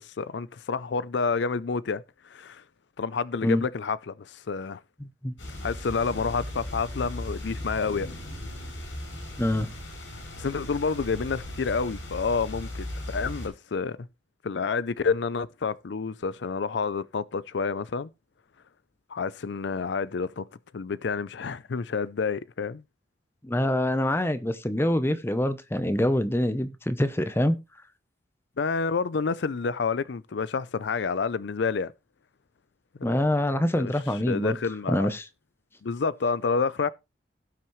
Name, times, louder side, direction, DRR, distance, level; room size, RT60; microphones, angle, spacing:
voice 1, 0.0-2.6 3.0-4.8 5.6-8.1 10.4-14.0 14.4-18.1 19.1-20.4 20.7-22.8 28.6-31.9 33.8-33.9 34.2-35.1 35.8-36.9, left 5 dB, 65° left, 0.5 m, -29 dB
voice 2, 5.0-5.3 9.4-9.7 23.4-27.6 33.0-34.6 34.9-35.3, left 1 dB, 15° left, 0.7 m, -25 dB
sound 1, 5.4-13.5, left 1 dB, 85° left, 6.2 m, -37 dB
17.0 x 6.0 x 3.1 m
head